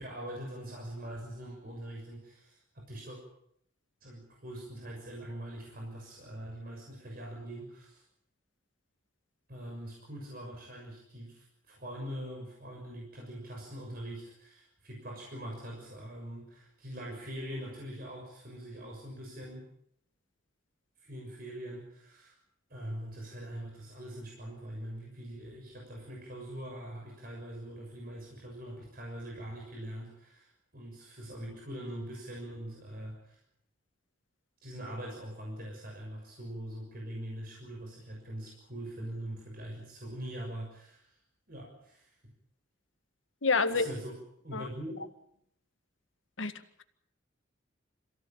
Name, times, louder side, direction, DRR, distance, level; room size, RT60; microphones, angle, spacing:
voice 1, 0.0-3.2 4.0-8.0 9.5-19.7 21.0-22.4 22.7-33.4 34.6-41.2 41.5-42.3 43.7-45.0, right 1 dB, 50° right, -1 dB, 6.6 m, -43 dB
voice 2, 43.4-43.9 44.5-44.6 46.4-46.5, left 4 dB, 85° left, 9 dB, 1.8 m, -27 dB
27.5 x 16.5 x 8.8 m, 0.71 s
head